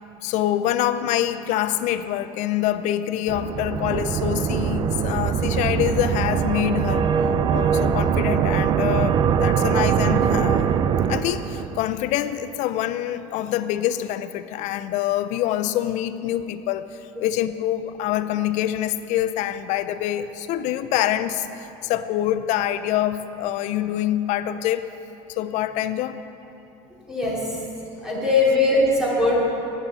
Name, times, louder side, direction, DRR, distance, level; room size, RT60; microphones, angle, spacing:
voice 1, 0.2-7.1 7.5-10.7 11.1-24.8 25.3-26.2 28.1-28.3, left 12 dB, 55° left, 12 dB, 0.5 m, -25 dB
sound 1, 3.3-11.8, right 7 dB, 35° right, 0.4 m, -22 dB
voice 2, 27.1-27.4 28.0-29.4, left 2 dB, 5° right, -7 dB, 2.8 m, -20 dB
14.0 x 9.7 x 4.1 m, 2.9 s
cardioid pair, 140°, 15 cm